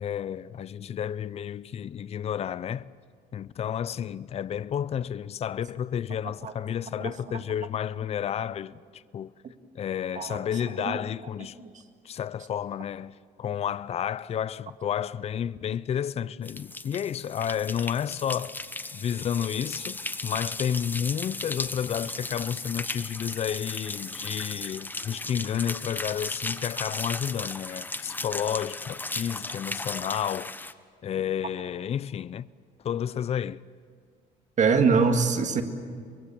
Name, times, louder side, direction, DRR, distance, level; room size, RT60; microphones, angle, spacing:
voice 1, 0.0-2.9 3.3-9.3 9.7-11.6 12.0-18.6 18.9-30.5 31.0-32.5 32.8-33.6, left 9 dB, 40° left, 0.5 m, -31 dB
voice 2, 7.0-7.4 10.1-10.4 10.8-11.0 11.4-11.7 34.6-35.6, right 5 dB, 45° right, 2.1 m, -24 dB
sound 1, 16.4-30.7, left 2 dB, 10° left, 0.8 m, -36 dB
24.5 x 22.0 x 7.2 m
cardioid pair, 110°, 17 cm